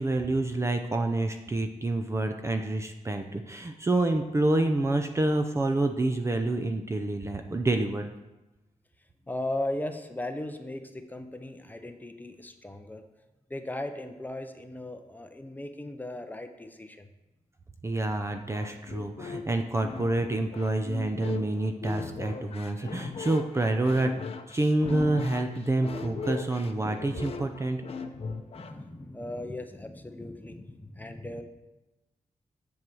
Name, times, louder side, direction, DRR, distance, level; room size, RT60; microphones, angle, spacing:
voice 1, 0.0-8.1 17.8-24.1 24.5-27.8, right 2 dB, 20° right, 5 dB, 0.5 m, -28 dB
voice 2, 9.3-13.0 13.5-17.1 28.5-31.4, left 1 dB, 15° left, 6 dB, 0.7 m, -37 dB
sound 1, 18.3-28.9, left 5 dB, 50° left, 0.8 m, -39 dB
7.9 x 7.1 x 6.1 m, 1.0 s
wide cardioid pair, 145°, 13 cm